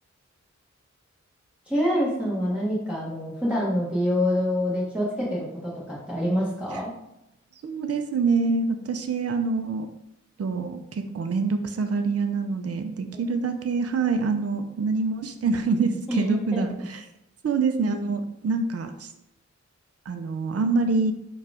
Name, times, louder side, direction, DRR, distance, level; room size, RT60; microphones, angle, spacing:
voice 1, 1.7-6.9 16.1-16.9, equal, 5° right, -7 dB, 1.1 m, -26 dB
voice 2, 7.6-9.9 10.4-17.0 17.4-19.1 20.1-21.1, right 4 dB, 55° right, 7 dB, 0.5 m, -26 dB
4.6 x 2.4 x 4.9 m, 0.84 s
wide cardioid pair, 85°, 29 cm